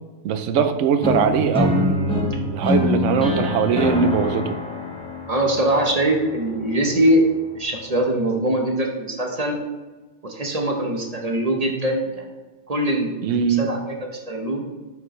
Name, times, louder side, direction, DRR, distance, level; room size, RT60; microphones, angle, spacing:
voice 1, 0.2-4.6 13.2-13.7, right 7 dB, 80° right, 10 dB, 1.0 m, -21 dB
sound 1, 1.0-7.0, left 3 dB, 5° left, 0.8 m, -25 dB
voice 2, 5.3-9.6 10.2-12.3 12.7-14.6, right 1 dB, 35° right, 1 dB, 1.0 m, -22 dB
7.1 x 6.5 x 3.1 m, 1.2 s
omnidirectional pair, 1.2 m